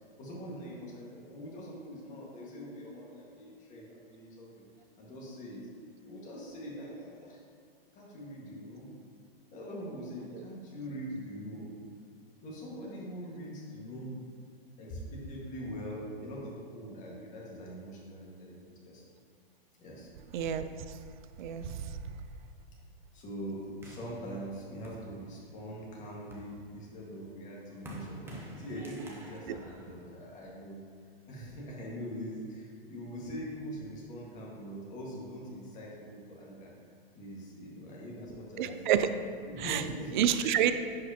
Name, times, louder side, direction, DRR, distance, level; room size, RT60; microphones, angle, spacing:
voice 1, 0.2-4.7 5.0-5.6 6.0-7.4 7.9-8.9 9.5-11.7 12.4-14.2 14.8-19.0 19.8-20.1 23.1-30.8 31.3-36.7 37.1-38.8 39.5-40.2, equal, 25° left, -4 dB, 1.7 m, -43 dB
voice 2, 20.3-20.7 21.4-22.0 29.5-29.6 38.6-39.1 39.6-39.8 40.1-40.7, right 10 dB, 50° right, 10 dB, 0.5 m, -28 dB
sound 1, 23.8-25.6 26.1-30.7, right 1 dB, 10° right, 0.7 m, -49 dB
10.5 x 4.9 x 2.9 m, 2.1 s
hypercardioid pair, 145°, 30 cm